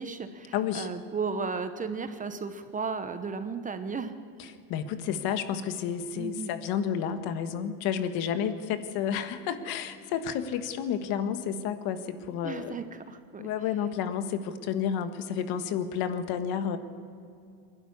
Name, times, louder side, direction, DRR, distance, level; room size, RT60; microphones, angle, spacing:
voice 1, 0.0-4.1 4.4-4.5 6.1-6.5 12.4-13.5, right 5 dB, 20° right, 9 dB, 0.9 m, -35 dB
voice 2, 0.5-0.9 4.4-12.8 13.4-16.8, left 8 dB, 65° left, 9 dB, 1.6 m, -31 dB
26.0 x 12.0 x 9.7 m, 2.5 s
cardioid pair, 140°, 40 cm